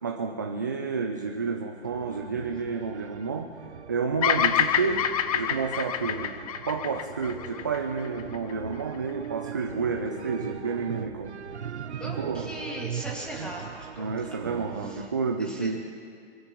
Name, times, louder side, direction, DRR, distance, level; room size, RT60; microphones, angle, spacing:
voice 1, 0.0-3.6 3.9-11.7 12.2-12.5 14.0-15.9, right 4 dB, 20° right, 4 dB, 0.3 m, -30 dB
sound 1, 1.8-15.1, right 8 dB, 80° right, 0.9 m, -40 dB
Bird vocalization bird call bird song, 4.2-8.5, left 9 dB, 35° left, 0.7 m, -27 dB
voice 2, 12.0-14.4 14.8-15.1 15.4-15.8, equal, 5° left, -3 dB, 2.2 m, -39 dB
26.0 x 16.0 x 3.0 m, 2.3 s
hypercardioid pair, 150°, 33 cm